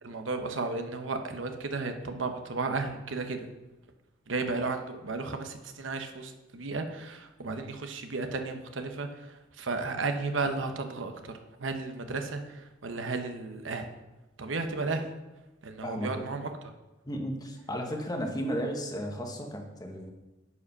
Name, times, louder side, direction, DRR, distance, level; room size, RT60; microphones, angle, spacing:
voice 1, 0.0-3.5 4.3-13.9 14.4-15.1 15.6-16.5, right 3 dB, 85° right, 7 dB, 0.9 m, -34 dB
voice 2, 15.8-16.3 17.1-20.1, equal, 20° left, 2 dB, 1.3 m, -34 dB
9.8 x 5.1 x 5.5 m, 1.0 s
head